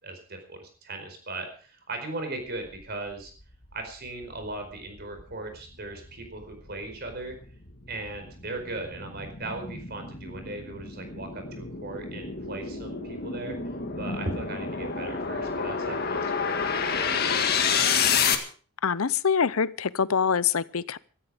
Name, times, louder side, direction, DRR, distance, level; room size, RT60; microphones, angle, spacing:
voice 1, 0.0-3.3 3.7-7.4 7.9-17.6, right 2 dB, 50° right, 4.8 m, -38 dB
sound 1, 3.6-3.7 4.2-18.4, left 6 dB, 45° left, 1.9 m, -29 dB
voice 2, 18.8-21.0, left 6 dB, 80° left, 0.7 m, -25 dB
16.5 x 13.5 x 5.0 m
head